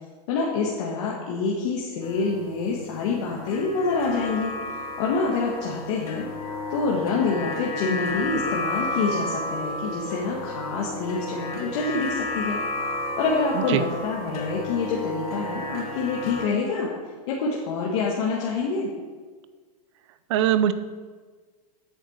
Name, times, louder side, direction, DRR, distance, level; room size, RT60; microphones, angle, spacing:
voice 1, 0.3-4.5 5.0-6.3 6.7-12.6 12.9-16.9 17.3-18.9, left 4 dB, 45° left, -3 dB, 1.6 m, -26 dB
sound 1, 2.0-16.5, left 2 dB, 65° left, 1.6 m, -32 dB
voice 2, 20.3-20.7, right 11 dB, 50° right, 13 dB, 0.7 m, -21 dB
8.8 x 7.6 x 6.6 m, 1.5 s
supercardioid pair, 160°, 19 cm